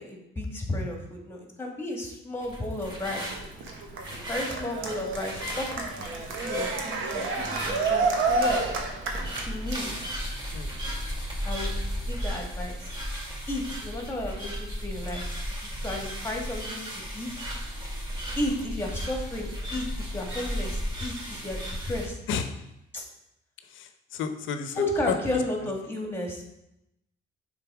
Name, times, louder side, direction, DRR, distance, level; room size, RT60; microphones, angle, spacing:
voice 1, 0.0-3.4 4.3-6.1 6.4-8.7 9.4-10.0 11.4-12.9 13.5-15.3 15.8-17.3 18.4-21.6 21.8-22.2 22.9-23.0 24.8-26.4, left 1 dB, 10° left, 0 dB, 1.9 m, -33 dB
sound 1, 2.4-22.1, equal, 25° right, 2.2 m, -35 dB
Cheering, 3.1-10.1, right 3 dB, 80° right, 1.1 m, -29 dB
voice 2, 23.7-25.1, left 6 dB, 75° left, 9 dB, 0.7 m, -32 dB
6.7 x 3.9 x 4.9 m, 0.84 s
cardioid pair, 90°, 20 cm